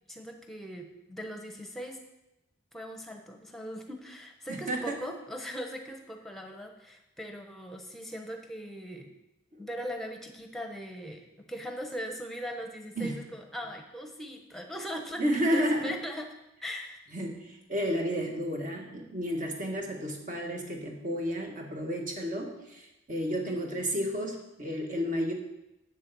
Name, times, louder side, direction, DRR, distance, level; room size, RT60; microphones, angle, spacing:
voice 1, 0.1-2.0 2.7-9.1 9.6-15.2 15.5-16.3 16.6-17.0 23.5-23.7, equal, ahead, 3 dB, 1.0 m, -40 dB
voice 2, 4.5-5.0 9.6-9.7 13.0-13.2 15.2-15.9 17.1-25.3, equal, 40° right, 1 dB, 1.7 m, -31 dB
8.0 x 6.7 x 6.9 m, 0.91 s
head